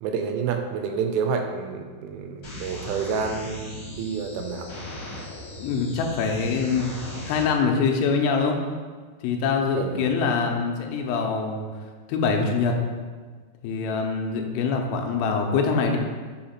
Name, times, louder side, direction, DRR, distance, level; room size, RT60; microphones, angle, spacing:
voice 1, 0.0-4.7 9.8-10.0, right 6 dB, 85° right, 5 dB, 2.9 m, -29 dB
sound 1, 2.4-7.4, left 1 dB, 70° left, 1.2 m, -37 dB
voice 2, 5.6-6.9 7.2-8.6 9.2-11.7 12.1-12.8 13.6-16.0, left 5 dB, 90° left, 3 dB, 3.1 m, -24 dB
7.0 x 2.9 x 5.5 m, 1.5 s
omnidirectional pair, 5.4 m